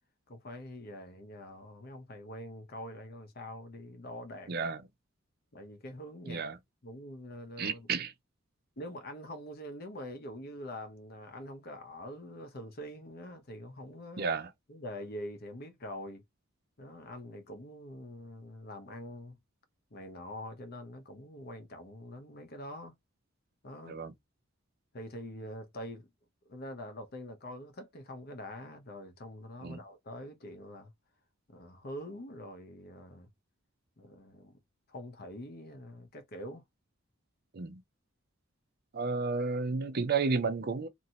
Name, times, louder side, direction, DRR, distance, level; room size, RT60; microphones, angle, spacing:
voice 1, 0.3-4.5 5.5-6.5 6.8-7.9 8.8-14.3 14.7-16.2 16.8-19.4 19.9-22.9 23.6-24.0 24.9-26.1 26.4-30.9 31.5-33.3 34.0-34.6 34.9-36.6, left 1 dB, 50° left, 0.8 m, -44 dB
voice 2, 4.5-4.8 6.3-6.6 7.6-8.1 14.2-14.5 23.9-24.1 29.6-29.8 37.5-37.8 38.9-40.9, right 4 dB, 50° right, 0.5 m, -32 dB
2.9 x 2.6 x 2.7 m
head